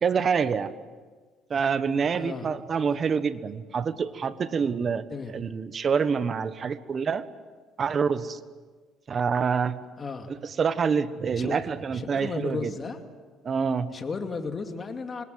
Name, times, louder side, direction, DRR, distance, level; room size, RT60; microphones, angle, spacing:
voice 1, 0.0-0.7 1.5-5.0 5.3-7.3 7.8-8.4 9.1-9.8 10.3-12.7 13.4-13.9, right 6 dB, 35° right, 12 dB, 1.2 m, -26 dB
voice 2, 2.2-2.5 2.9-3.0 5.1-5.4 10.0-10.3 11.4-11.6 11.9-13.0 13.9-15.2, left 4 dB, 30° left, 6 dB, 2.5 m, -34 dB
27.0 x 21.0 x 8.0 m, 1.4 s
cardioid pair, 115°, 0 cm